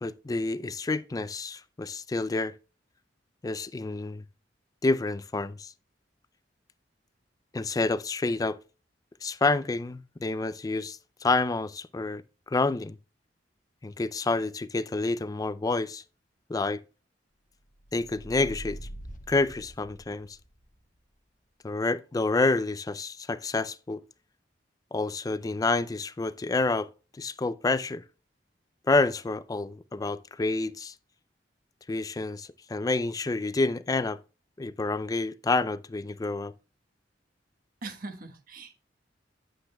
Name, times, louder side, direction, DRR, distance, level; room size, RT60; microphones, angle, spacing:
voice 1, 0.0-2.5 3.4-4.2 4.8-5.7 7.5-8.6 9.2-13.0 13.8-16.0 16.5-16.8 17.9-18.8 19.3-20.4 21.6-24.0 24.9-26.9 27.2-28.0 28.9-30.9 31.9-34.2 34.6-36.5, left 3 dB, 20° left, 0.3 m, -28 dB
sound 1, 17.8-20.4, right 1 dB, 50° left, 1.0 m, -43 dB
voice 2, 37.8-38.8, right 3 dB, 50° right, 1.3 m, -41 dB
9.8 x 8.9 x 2.2 m
head